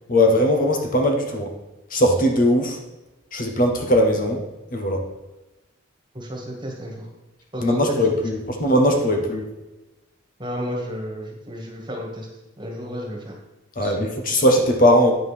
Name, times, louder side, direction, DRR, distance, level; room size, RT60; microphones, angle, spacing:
voice 1, 0.1-1.5 1.9-2.8 3.3-4.4 4.7-5.0 7.6-9.5 13.8-15.1, equal, 45° left, 3 dB, 1.1 m, -19 dB
voice 2, 6.1-7.1 7.5-8.3 10.4-12.3 12.6-13.3 13.8-13.9, equal, 25° right, 0 dB, 1.8 m, -32 dB
9.4 x 3.9 x 6.6 m, 1.1 s
head